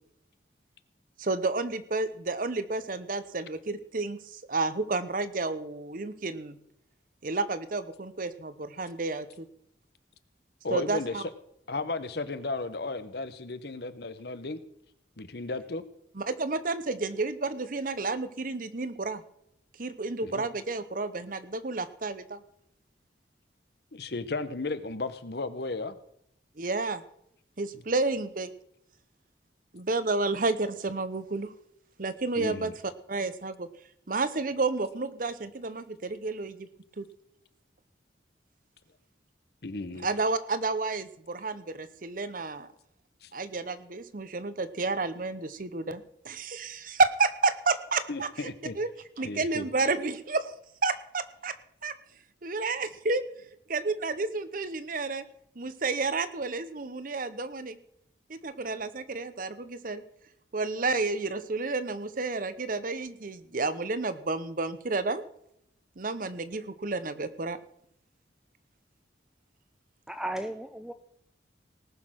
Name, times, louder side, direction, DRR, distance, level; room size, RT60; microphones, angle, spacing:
voice 1, 1.2-6.6 7.2-9.5 10.7-11.2 16.1-19.2 19.8-22.4 26.6-27.0 27.6-28.5 29.7-31.5 32.0-33.7 34.1-36.7 37.0-37.1 40.0-42.7 43.3-48.5 48.7-48.9 49.2-50.4 50.8-51.5 51.8-51.9 52.4-53.2 53.7-55.2 55.6-57.8 58.3-60.0 60.5-65.2 66.0-67.6, right 3 dB, 45° right, 13 dB, 0.9 m, -31 dB
voice 2, 10.6-11.3 11.7-14.6 15.2-15.8 20.2-20.4 23.9-26.0 32.4-32.7 39.6-40.1 43.2-43.3 48.1-48.8 49.2-49.7, left 3 dB, 60° left, 13 dB, 0.9 m, -34 dB
voice 3, 70.1-70.9, right 1 dB, 5° right, 9 dB, 0.5 m, -35 dB
18.5 x 6.5 x 6.3 m, 0.74 s
head